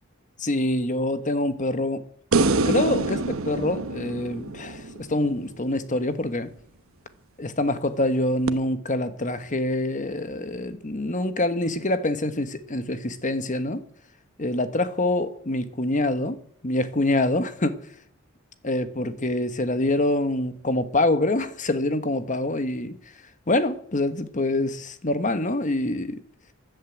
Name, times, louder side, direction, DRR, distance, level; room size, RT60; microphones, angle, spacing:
voice 1, 0.4-2.0 2.6-6.5 7.4-13.8 14.4-16.4 16.6-17.8 18.6-23.0 23.5-26.2, left 1 dB, 40° left, 1.3 m, -25 dB
sound 1, 2.3-5.6 8.5-8.6, right 3 dB, 80° right, 1.0 m, -26 dB
14.0 x 10.5 x 8.2 m
head